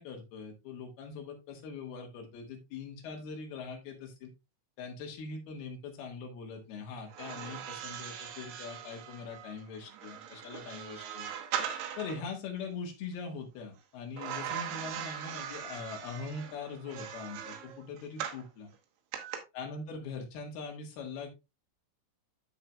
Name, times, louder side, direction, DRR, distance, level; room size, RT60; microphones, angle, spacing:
voice 1, 0.0-4.3 4.8-11.3 12.0-18.7 19.5-21.3, left 5 dB, 60° left, 2 dB, 3.1 m, -42 dB
sound 1, 7.1-12.2 14.2-18.5 19.1-19.4, right 9 dB, 75° right, 3.4 m, -40 dB
13.5 x 4.8 x 2.3 m, 0.25 s
omnidirectional pair, 5.7 m